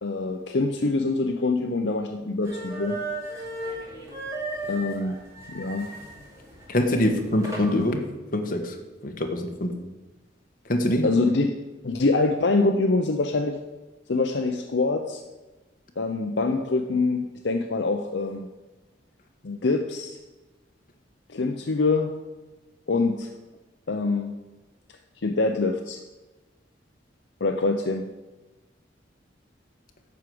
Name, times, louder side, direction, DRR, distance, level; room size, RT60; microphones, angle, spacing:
voice 1, 0.0-3.0 4.6-5.2 5.5-5.9 11.0-11.5 11.8-13.6 14.1-15.2 16.0-18.5 19.4-20.2 21.3-22.1 22.9-23.3 23.9-24.4 25.2-26.0 27.4-28.1, left 3 dB, 70° left, 5 dB, 0.7 m, -25 dB
sound 1, 2.4-7.9, right 2 dB, 15° right, 2.7 m, -36 dB
voice 2, 6.7-8.1 8.3-8.7 9.0-9.7 10.7-11.1, left 1 dB, 50° left, 4 dB, 1.3 m, -24 dB
11.0 x 4.9 x 7.7 m, 1.2 s
head